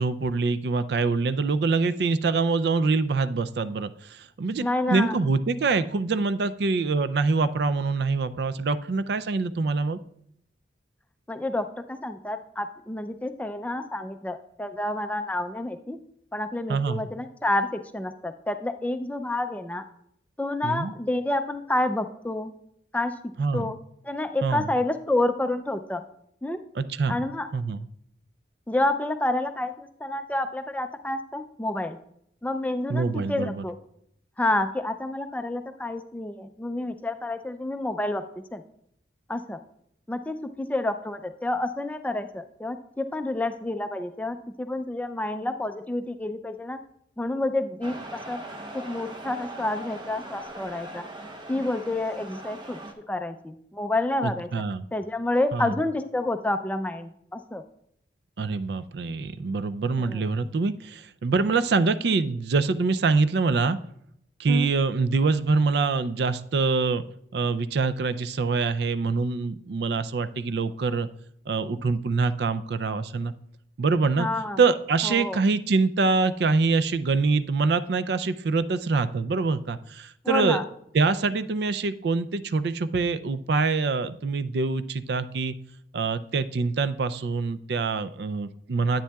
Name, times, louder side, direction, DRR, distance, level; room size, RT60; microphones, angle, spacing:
voice 1, 0.0-10.0 16.7-17.0 20.6-20.9 23.4-23.7 24.4-24.7 26.8-27.2 27.5-27.8 32.9-33.6 54.2-54.8 55.5-55.7 58.4-63.8 64.4-67.0 67.3-71.1 71.5-73.3 73.8-74.3 74.6-80.6 80.9-85.5 85.9-89.0, right 4 dB, 65° right, 13 dB, 0.4 m, -25 dB
voice 2, 4.6-5.2 11.3-16.0 16.3-19.9 20.4-22.5 22.9-23.1 23.5-23.8 24.0-26.0 26.4-26.6 27.1-27.5 28.7-32.0 32.4-33.8 34.4-38.2 38.5-38.6 39.3-39.6 40.1-46.8 47.2-48.4 48.7-51.0 51.5-52.8 53.1-54.6 54.9-57.6 60.0-60.2 64.5-64.7 74.2-74.6 75.0-75.4 80.2-80.6, left 2 dB, 10° left, 9 dB, 0.3 m, -29 dB
sound 1, 47.8-52.9, right 1 dB, 25° right, 0.8 m, -40 dB
10.0 x 8.9 x 2.3 m, 0.72 s
head